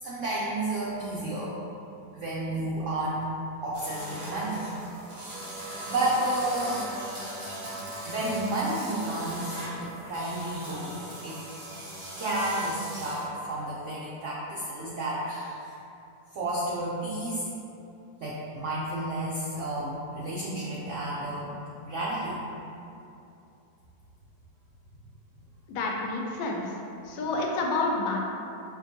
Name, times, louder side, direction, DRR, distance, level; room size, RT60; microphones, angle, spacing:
voice 1, 0.0-1.6 2.1-3.3 3.6-4.6 5.3-6.8 8.1-11.4 12.2-15.7 16.3-17.4 18.2-21.5 21.8-22.4, right 1 dB, 90° right, -7 dB, 0.6 m, -31 dB
sound 1, 3.7-13.3, right 1 dB, 45° right, 0.6 m, -39 dB
voice 2, 25.7-26.7 27.0-28.2, left 3 dB, 90° left, -1 dB, 1.3 m, -29 dB
5.7 x 2.2 x 2.8 m, 2.7 s
omnidirectional pair, 1.9 m